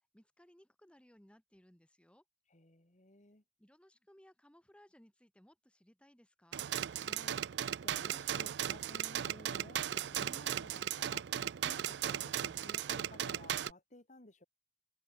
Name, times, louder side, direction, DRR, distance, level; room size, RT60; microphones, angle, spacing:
voice 1, 0.0-2.2 3.6-6.7, equal, 5° left, 1.5 m, -63 dB
voice 2, 2.5-3.4 7.0-7.4 7.8-11.3 11.6-14.4, left 2 dB, 45° left, 2.7 m, -56 dB
sound 1, 6.5-13.7, right 10 dB, 75° right, 0.4 m, -37 dB
head